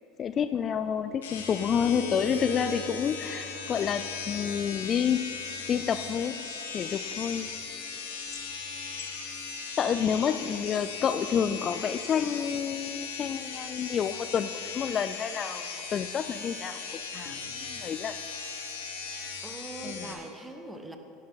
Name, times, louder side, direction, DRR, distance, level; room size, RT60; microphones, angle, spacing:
voice 1, 0.2-7.5 9.8-16.8 17.1-18.2 19.8-20.1, left 8 dB, 35° left, 11 dB, 0.3 m, -29 dB
sound 1, 1.2-20.1, left 5 dB, 80° left, 1.4 m, -38 dB
ghost gong, 1.4-13.0 17.3-17.4, right 2 dB, 55° left, 1.9 m, -46 dB
voice 2, 19.4-21.0, right 2 dB, 10° right, 6 dB, 1.1 m, -41 dB
11.0 x 8.6 x 5.6 m, 2.9 s
hypercardioid pair, 85°, 0 cm